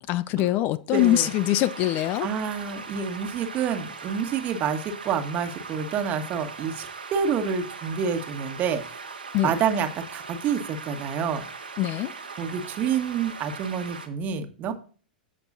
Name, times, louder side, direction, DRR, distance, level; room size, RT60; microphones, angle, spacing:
voice 1, 0.1-2.3 9.3-9.5 11.8-12.1, left 14 dB, 40° left, 0.4 m, -23 dB
voice 2, 0.9-1.3 2.2-8.8 9.4-11.4 12.4-14.7, right 7 dB, 35° right, 1.4 m, -28 dB
sound 1, 0.9-14.1, right 4 dB, 85° right, 1.5 m, -40 dB
15.0 x 5.3 x 2.7 m
figure-of-eight pair, 95°, 5 cm